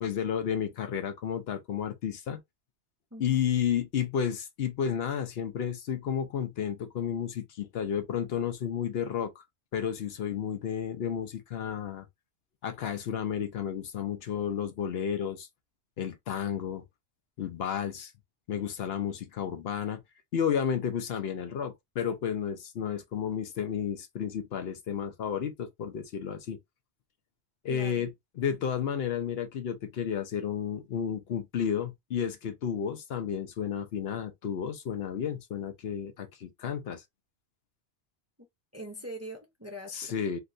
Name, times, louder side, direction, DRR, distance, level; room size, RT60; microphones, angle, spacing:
voice 1, 0.0-2.4 3.2-9.4 9.7-12.1 12.6-15.5 16.0-16.8 17.4-18.1 18.5-20.0 20.3-26.6 27.6-28.1 28.4-37.0 39.9-40.4, left 8 dB, 70° left, 0.8 m, -32 dB
voice 2, 3.1-3.4 27.7-28.1 38.7-40.2, equal, 20° right, 0.5 m, -43 dB
3.2 x 2.6 x 2.5 m
omnidirectional pair, 1.1 m